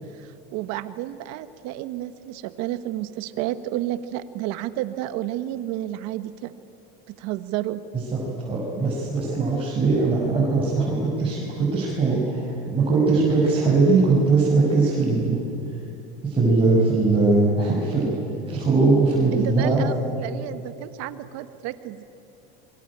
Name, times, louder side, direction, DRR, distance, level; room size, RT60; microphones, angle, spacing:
voice 1, 0.2-6.5 7.2-7.8 19.3-22.0, right 14 dB, 60° right, 12 dB, 1.5 m, -31 dB
voice 2, 7.9-15.4 16.2-18.1 18.5-19.9, right 3 dB, 20° right, -6 dB, 6.7 m, -21 dB
27.5 x 23.0 x 8.8 m, 2.8 s
supercardioid pair, 125°, 29 cm